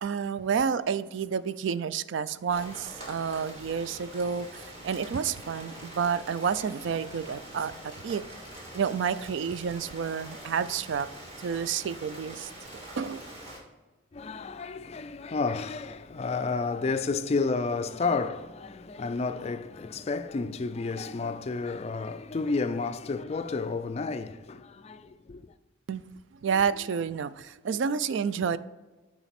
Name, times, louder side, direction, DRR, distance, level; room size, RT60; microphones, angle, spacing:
voice 1, 0.0-8.3 8.7-11.1 11.4-13.2 25.9-26.0 26.4-28.6, right 6 dB, 65° right, 0.3 m, -30 dB
Rain, 2.5-13.6, right 1 dB, 30° right, 1.8 m, -44 dB
voice 2, 14.1-25.6, left 4 dB, 30° left, 0.3 m, -31 dB
9.0 x 4.9 x 4.2 m
head